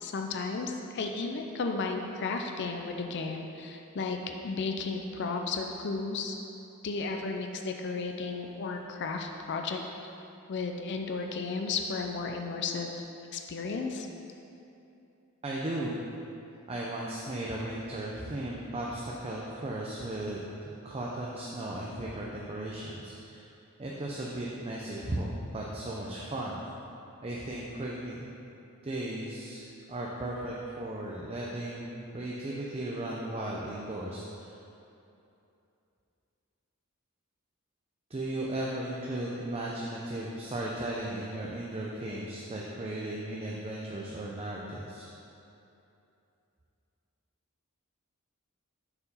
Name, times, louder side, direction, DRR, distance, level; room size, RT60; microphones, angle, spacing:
voice 1, 0.0-4.2 4.4-6.4 6.8-9.8 10.5-13.0 13.3-14.1, left 4 dB, 55° left, 3 dB, 0.5 m, -34 dB
voice 2, 15.4-16.0 16.7-23.5 23.8-25.3 25.5-26.6 27.2-28.3 28.8-34.6 38.1-45.1, right 1 dB, 30° right, -4 dB, 0.6 m, -36 dB
6.7 x 4.7 x 5.4 m, 2.8 s
head